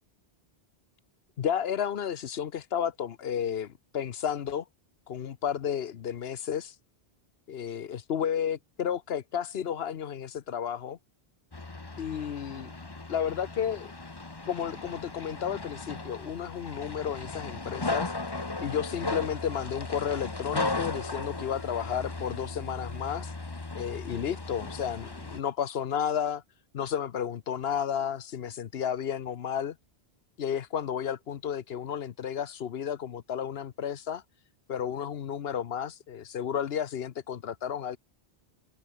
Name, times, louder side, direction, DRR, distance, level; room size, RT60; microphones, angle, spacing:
voice 1, 1.4-4.6 5.1-6.7 7.5-11.0 12.0-12.7 13.1-13.9 14.5-18.1 18.6-23.3 23.7-26.4 26.7-29.8 30.4-34.2 34.7-38.0, left 8 dB, 70° left, 1.0 m, -32 dB
sound 1, 11.5-25.4, left 3 dB, 25° left, 1.3 m, -36 dB
omnidirectional pair, 1.1 m